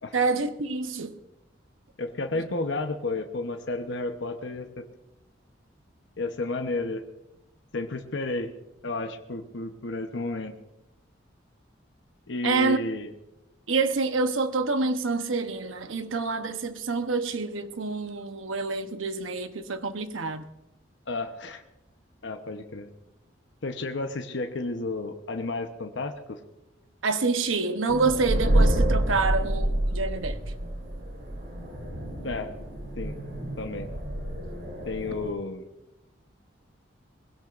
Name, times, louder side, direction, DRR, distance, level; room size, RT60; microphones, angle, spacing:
voice 1, 0.1-1.1 12.4-12.8 13.7-20.4 27.0-30.4, right 4 dB, 90° right, 1.0 m, -27 dB
voice 2, 2.0-4.8 6.2-7.0 7.7-8.5 8.8-10.5 12.3-13.1 21.1-21.6 22.2-22.9 23.6-26.4 32.2-32.5 33.0-33.2 33.6-33.9 34.8-35.7, left 2 dB, 70° left, 1.0 m, -32 dB
sound 1, 27.9-35.3, right 1 dB, 60° right, 4.2 m, -28 dB
21.0 x 16.5 x 2.6 m
head